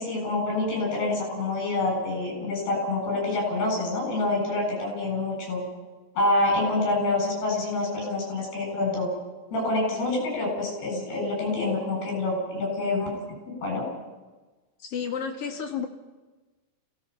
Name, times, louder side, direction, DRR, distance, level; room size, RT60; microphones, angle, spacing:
voice 1, 0.0-5.6 6.2-9.1 9.5-13.2 13.5-13.8, left 2 dB, 60° left, 0 dB, 9.9 m, -27 dB
voice 2, 14.9-15.9, left 7 dB, 45° left, 3 dB, 2.1 m, -31 dB
29.0 x 18.0 x 5.9 m, 1.2 s
omnidirectional pair, 5.2 m